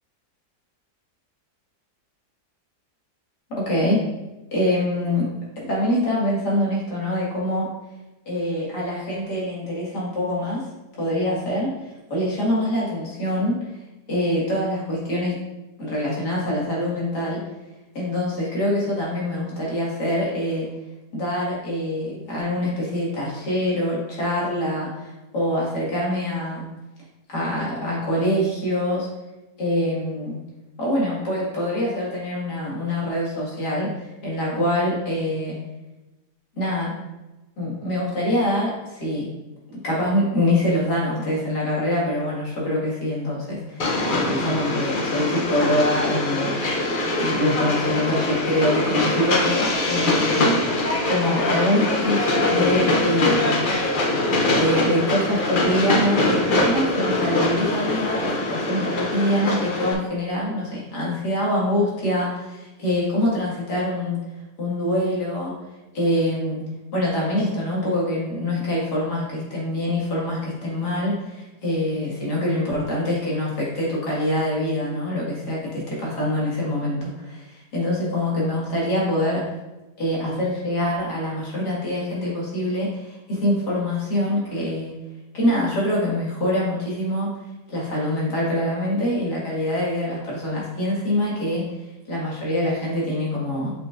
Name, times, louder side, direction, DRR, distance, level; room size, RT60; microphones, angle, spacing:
voice 1, 3.6-4.1 4.5-7.7 8.3-10.6 11.0-11.7 12.1-13.6 14.1-15.4 15.8-17.4 17.9-20.7 21.1-26.7 27.3-29.1 29.6-30.4 30.8-33.9 34.2-35.6 36.6-36.9 37.6-39.3 39.8-46.8 47.2-50.4 51.1-53.7 54.5-64.2 64.6-65.5 65.9-66.6 66.9-79.4 80.0-84.9 85.3-87.3 87.7-91.7 92.1-93.7, left 1 dB, 75° left, -6 dB, 2.5 m, -24 dB
Train, 43.8-59.9, left 2 dB, 50° left, 0.6 m, -23 dB
6.7 x 5.6 x 2.5 m, 1.1 s
omnidirectional pair, 1.8 m